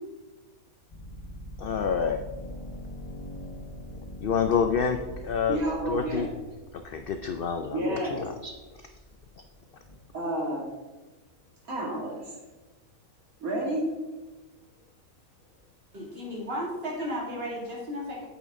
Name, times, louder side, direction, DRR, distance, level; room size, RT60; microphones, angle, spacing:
sound 1, 0.9-10.0, equal, 25° left, 1.1 m, -43 dB
voice 1, 1.6-2.2 4.2-5.6 5.9-6.3 6.8-8.5, left 6 dB, 75° left, 7 dB, 0.5 m, -28 dB
voice 2, 5.5-6.3 7.6-8.2 10.1-10.7 11.7-12.3 13.4-13.9, right 1 dB, 70° right, -3 dB, 2.7 m, -30 dB
voice 3, 15.9-18.3, equal, 40° right, -2 dB, 2.4 m, -34 dB
8.6 x 8.4 x 3.6 m, 1.2 s
omnidirectional pair, 1.5 m